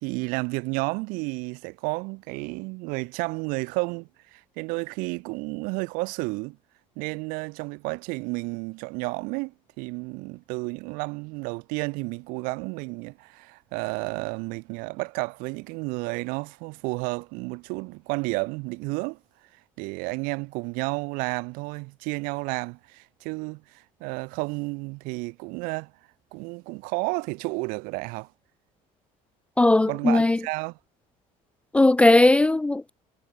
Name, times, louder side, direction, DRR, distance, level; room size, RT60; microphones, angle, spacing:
voice 1, 0.0-6.6 7.0-19.2 19.8-25.9 26.3-28.3 29.9-30.8, right 28 dB, 85° right, 1.8 m, -31 dB
voice 2, 29.6-30.4 31.7-32.9, left 2 dB, 10° left, 0.4 m, -18 dB
cardioid pair, 145°, 14 cm